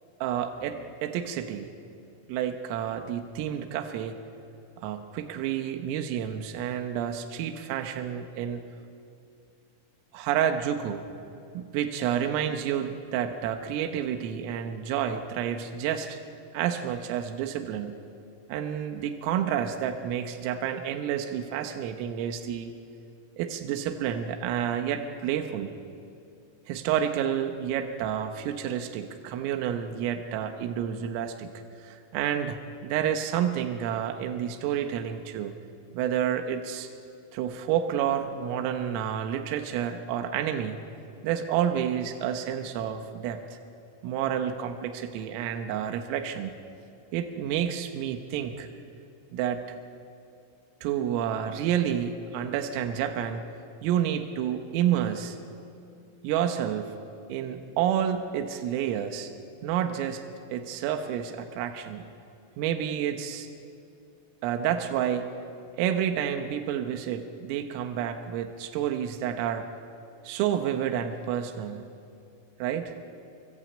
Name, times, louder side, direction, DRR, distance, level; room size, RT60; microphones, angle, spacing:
voice 1, 0.2-1.7 2.3-4.2 4.8-8.6 10.1-11.1 11.5-16.2 16.5-18.0 18.5-22.7 23.4-25.7 26.7-31.5 31.8-35.5 35.9-36.9 37.3-40.8 41.2-43.6 44.0-46.5 47.1-48.7 49.3-49.6 50.8-53.5 53.8-55.4 56.2-57.0 57.3-59.3 59.6-60.2 60.5-62.1 62.6-63.5 64.4-65.3 65.8-69.7 70.3-71.9 72.6-72.9, right 9 dB, 80° right, 6 dB, 3.8 m, -29 dB
27.0 x 24.0 x 8.6 m, 2.5 s
omnidirectional pair, 6.0 m